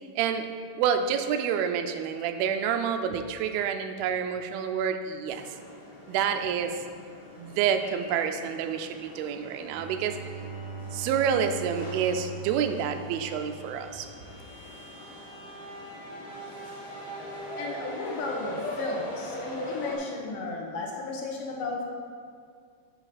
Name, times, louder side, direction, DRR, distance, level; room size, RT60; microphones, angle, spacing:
voice 1, 0.2-0.5 0.8-5.4 6.1-6.7 7.4-10.2 10.9-14.1, right 8 dB, 85° right, 7 dB, 2.4 m, -28 dB
sound 1, 5.3-20.0, left 1 dB, 55° left, 2.5 m, -41 dB
Bowed string instrument, 9.6-14.3, right 2 dB, 50° right, 2.5 m, -41 dB
voice 2, 17.6-21.8, left 3 dB, 70° left, -1 dB, 2.4 m, -34 dB
8.9 x 4.9 x 4.2 m, 2.1 s
omnidirectional pair, 4.2 m